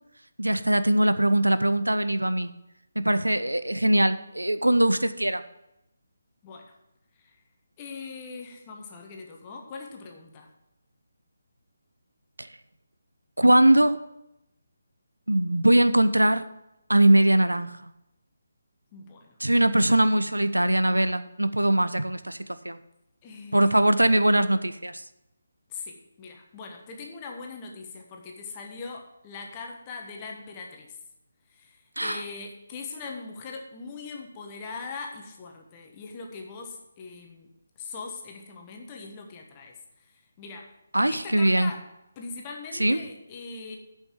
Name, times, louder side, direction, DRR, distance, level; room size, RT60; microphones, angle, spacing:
voice 1, 0.4-2.5 3.0-5.4 12.4-12.5 13.4-14.0 15.3-16.4 16.9-17.9 19.4-22.8 23.5-25.0 32.0-32.2 40.9-41.7 42.8-43.0, right 1 dB, 85° right, 13 dB, 0.6 m, -21 dB
voice 2, 6.4-6.7 7.2-7.4 7.8-10.5 18.9-19.4 23.2-24.0 25.7-31.0 31.5-37.5 37.8-40.7 41.1-41.8 42.2-43.8, left 4 dB, 25° left, 2 dB, 1.3 m, -41 dB
8.0 x 5.5 x 7.4 m, 0.88 s
figure-of-eight pair, 150°, 0 cm